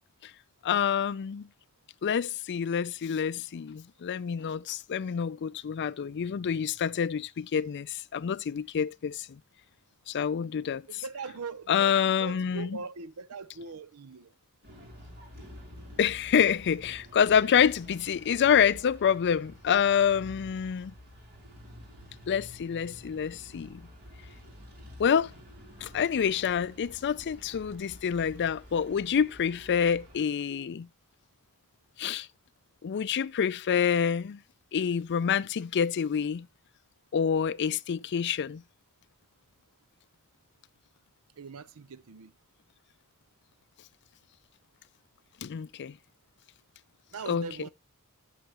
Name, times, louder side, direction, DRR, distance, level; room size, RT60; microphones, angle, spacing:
voice 1, 0.6-1.5 2.0-9.4 10.1-11.0 11.7-12.8 16.0-20.9 22.3-23.8 25.0-25.3 25.8-30.9 32.0-32.3 32.8-34.4 34.7-36.5 37.1-38.6 45.4-45.9 47.3-47.7, left 7 dB, 55° left, 0.4 m, -27 dB
voice 2, 10.9-14.3 41.4-42.3 47.1-47.7, right 4 dB, 75° right, 0.7 m, -41 dB
sound 1, 14.6-30.2, left 1 dB, 45° right, 6.2 m, -50 dB
14.0 x 5.7 x 3.0 m
head